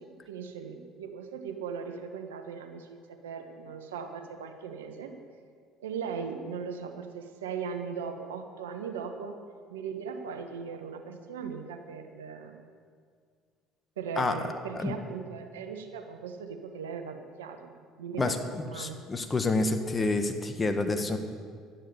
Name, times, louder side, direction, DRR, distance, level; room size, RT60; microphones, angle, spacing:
voice 1, 0.0-5.1 5.8-9.4 9.7-12.7 14.0-19.0, right 6 dB, 85° right, 6 dB, 1.2 m, -38 dB
voice 2, 18.2-21.2, left 3 dB, 25° left, 7 dB, 1.5 m, -28 dB
12.5 x 10.0 x 7.0 m, 2.1 s
hypercardioid pair, 65°, 0 cm